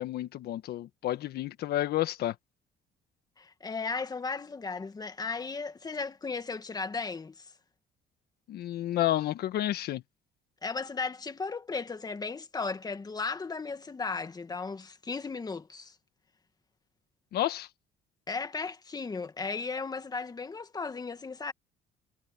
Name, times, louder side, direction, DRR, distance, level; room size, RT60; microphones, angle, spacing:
voice 1, 0.0-2.3 8.5-10.0 17.3-17.7, left 14 dB, 70° left, 1.5 m, -30 dB
voice 2, 3.4-7.5 10.6-16.0 18.3-21.5, left 4 dB, 25° left, 1.8 m, -35 dB
cardioid pair, 110°, 17 cm